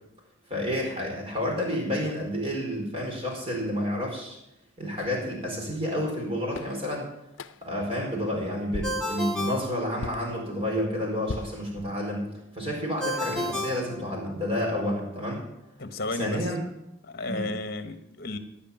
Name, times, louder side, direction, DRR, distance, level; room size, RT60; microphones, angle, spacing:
voice 1, 0.5-4.4 4.8-7.0 7.6-12.2 12.5-15.4 16.2-16.6 17.3-17.5, equal, 30° right, -1 dB, 4.2 m, -30 dB
sound 1, 5.0-5.2 6.1-6.2 6.5-6.8 7.3-7.8 8.2-8.4 8.7-9.1 10.0-10.3 11.3-12.2, left 3 dB, 70° left, 0.6 m, -38 dB
Ringtone, 8.8-10.5 13.0-14.7, left 1 dB, 5° left, 1.5 m, -32 dB
voice 2, 15.8-16.5 17.0-18.4, left 2 dB, 50° left, 9 dB, 1.3 m, -33 dB
16.5 x 5.6 x 9.4 m, 0.85 s
head